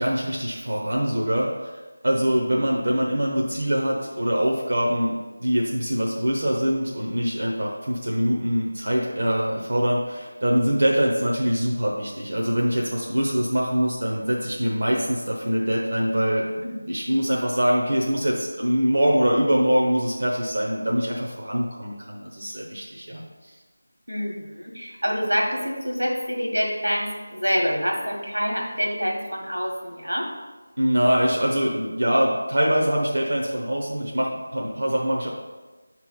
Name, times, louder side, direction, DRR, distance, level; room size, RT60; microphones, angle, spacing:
voice 1, 0.0-1.7 2.0-5.1 5.4-16.5 16.8-23.6 30.8-35.3, equal, 50° right, -3 dB, 0.7 m, -23 dB
voice 2, 24.1-30.3, equal, 85° right, 0 dB, 1.5 m, -26 dB
6.1 x 3.0 x 5.4 m, 1.3 s
figure-of-eight pair, 165°, 0 cm